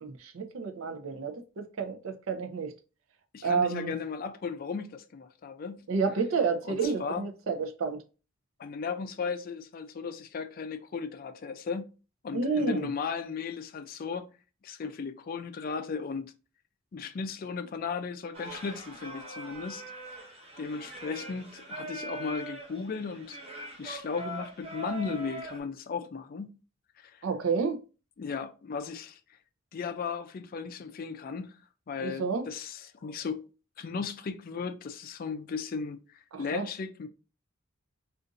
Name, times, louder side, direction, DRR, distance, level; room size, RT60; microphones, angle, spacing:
voice 1, 0.0-2.7 3.4-3.9 5.9-8.0 12.3-12.9 27.2-27.8 32.0-32.5 36.3-36.6, right 5 dB, 80° right, 0.5 m, -30 dB
voice 2, 3.3-5.8 6.7-7.3 8.6-11.9 12.2-14.3 14.6-16.3 16.9-19.8 20.6-26.6 27.0-27.3 28.2-29.2 29.7-31.6 31.9-33.5 33.8-37.1, left 5 dB, 45° left, 0.3 m, -36 dB
Singing, 18.3-25.6, right 2 dB, 30° right, 0.6 m, -42 dB
2.5 x 2.5 x 3.8 m
head